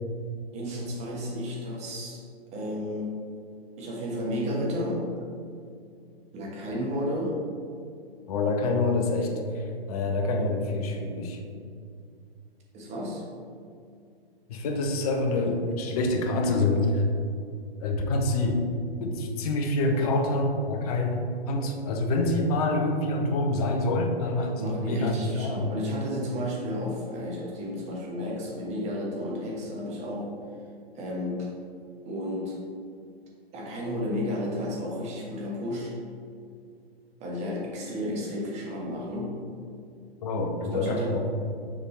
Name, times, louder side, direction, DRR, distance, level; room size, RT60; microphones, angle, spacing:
voice 1, 0.5-2.2 2.5-3.1 3.8-5.0 6.3-7.5 12.7-13.2 19.9-20.2 24.6-30.3 30.9-31.5 32.0-32.6 33.5-36.0 37.2-39.3 40.7-41.2, left 1 dB, 20° right, -3 dB, 1.2 m, -32 dB
voice 2, 8.3-9.6 9.9-11.4 14.5-17.0 17.8-18.7 19.0-25.7 40.2-41.2, left 2 dB, 40° left, 4 dB, 0.8 m, -26 dB
6.9 x 3.5 x 4.1 m, 2.3 s
figure-of-eight pair, 125°, 31 cm